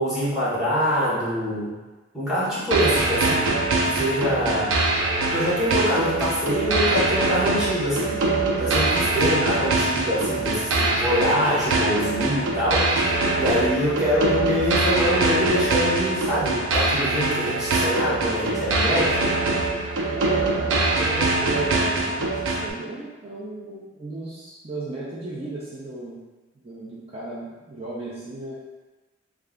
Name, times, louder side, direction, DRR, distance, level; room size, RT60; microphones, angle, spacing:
voice 1, 0.0-1.7 2.1-3.5 3.8-4.8 5.3-8.2 8.6-13.0 13.4-19.2, equal, ahead, -10 dB, 1.4 m, -24 dB
sound 1, 2.7-22.7, right 2 dB, 85° right, 0.5 m, -23 dB
voice 2, 20.1-26.2 26.5-28.6, right 2 dB, 30° right, -8 dB, 0.5 m, -35 dB
3.2 x 2.4 x 3.6 m, 1.2 s
head